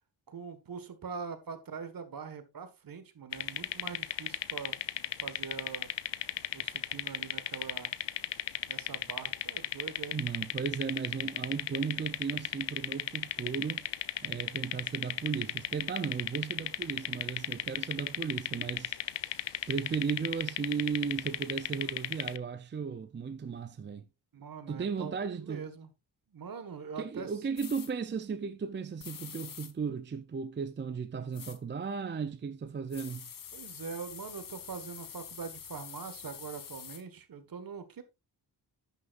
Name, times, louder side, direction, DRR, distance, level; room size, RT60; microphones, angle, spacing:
voice 1, 0.3-4.8 5.2-5.9 6.5-7.9 8.7-10.2 24.3-25.9 26.3-27.3 33.5-38.0, right 6 dB, 55° right, 1.6 m, -43 dB
sound 1, 3.3-22.4, left 12 dB, 90° left, 0.7 m, -35 dB
voice 2, 10.1-13.9 14.2-19.0 19.7-24.1 24.7-25.7 27.0-33.3, right 5 dB, 25° right, 0.5 m, -35 dB
sound 2, 27.6-27.9 29.0-29.7 31.3-31.6 32.9-37.0, left 8 dB, 55° left, 1.1 m, -46 dB
11.0 x 9.6 x 2.5 m
wide cardioid pair, 175°, 41 cm